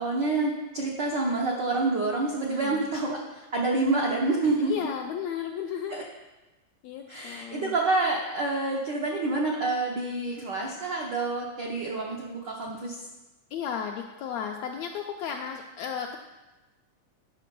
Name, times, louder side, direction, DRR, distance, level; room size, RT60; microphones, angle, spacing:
voice 1, 0.0-4.9 5.9-6.0 7.1-13.0, right 2 dB, 75° right, -2 dB, 1.0 m, -28 dB
voice 2, 2.5-2.8 4.6-6.0 6.8-7.7 13.5-16.2, left 8 dB, 85° left, 3 dB, 1.6 m, -34 dB
9.4 x 6.5 x 5.3 m, 1.1 s
omnidirectional pair, 3.6 m